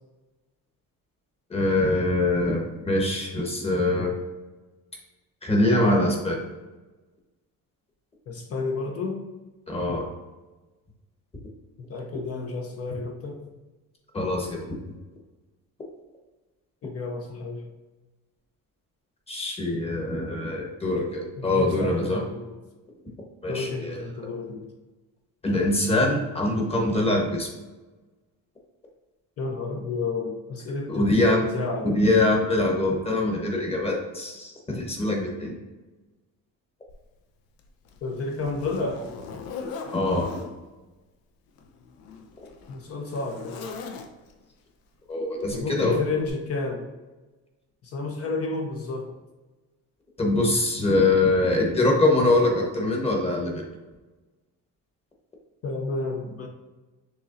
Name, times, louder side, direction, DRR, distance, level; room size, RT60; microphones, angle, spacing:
voice 1, 1.5-4.1 5.4-6.4 9.7-10.1 14.1-14.6 19.3-22.2 23.4-24.0 25.4-27.5 30.9-31.4 31.8-35.5 39.9-40.3 45.1-46.0 50.2-53.6, left 2 dB, 15° left, -1 dB, 1.0 m, -23 dB
voice 2, 8.3-9.2 11.8-13.4 16.8-17.6 21.4-22.5 23.5-24.6 29.4-32.0 38.0-39.0 42.7-43.6 45.5-46.9 47.8-49.2 55.6-56.5, left 3 dB, 40° left, 2 dB, 0.6 m, -31 dB
Zipper (clothing), 36.9-37.0 37.6-40.5 41.5-44.4 45.4-45.7 46.2-46.3, left 5 dB, 80° left, 0.7 m, -40 dB
6.6 x 3.1 x 2.5 m, 1.2 s
cardioid pair, 140°, 35 cm